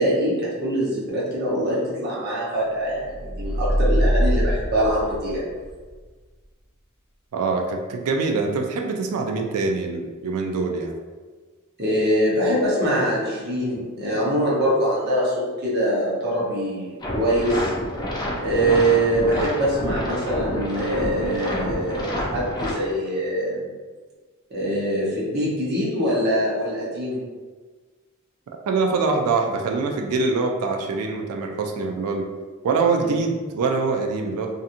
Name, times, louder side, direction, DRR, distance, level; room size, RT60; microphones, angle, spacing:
voice 1, 0.0-5.4 11.8-17.7 18.4-23.7 24.5-27.2 33.0-33.1, right 1 dB, 45° right, -6 dB, 0.8 m, -23 dB
sound 1, 3.1-5.7, equal, 20° right, 1.3 m, -22 dB
voice 2, 7.3-10.9 28.7-32.3 32.6-34.5, right 4 dB, 85° right, 3 dB, 0.3 m, -24 dB
sound 2, 17.0-22.7, left 1 dB, 20° left, 0.3 m, -28 dB
2.8 x 2.5 x 2.5 m, 1.4 s
head